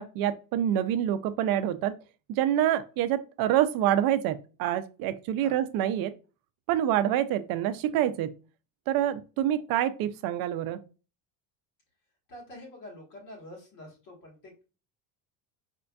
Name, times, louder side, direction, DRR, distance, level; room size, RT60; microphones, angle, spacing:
voice 1, 0.0-1.9 2.3-6.1 6.7-8.3 8.9-10.8, right 11 dB, 60° right, 0.5 m, -27 dB
voice 2, 12.3-14.6, left 1 dB, 50° left, 1.4 m, -46 dB
4.4 x 2.5 x 2.2 m
cardioid pair, 140°, 41 cm